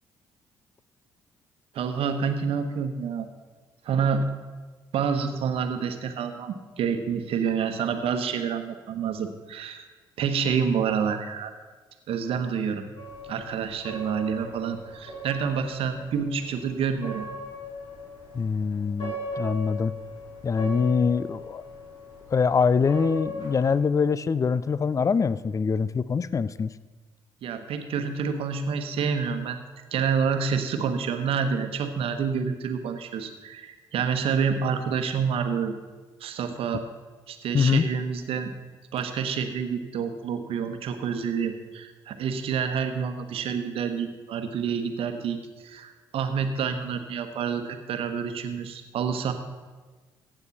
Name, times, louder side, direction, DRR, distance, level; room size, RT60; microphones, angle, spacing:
voice 1, 1.7-3.3 3.8-4.2 4.9-9.9 10.2-11.5 12.1-12.8 13.3-17.3 27.4-29.6 29.9-35.7 36.2-36.8 37.3-38.5 38.9-45.4 45.6-49.3, right 6 dB, 60° right, 8 dB, 1.2 m, -28 dB
sound 1, 13.0-23.8, left 1 dB, 50° left, 4.3 m, -39 dB
voice 2, 18.3-19.9 20.4-21.6 22.3-26.7 37.5-37.8, left 5 dB, 30° left, 17 dB, 0.5 m, -24 dB
15.0 x 8.9 x 4.1 m, 1.3 s
hypercardioid pair, 45°, 11 cm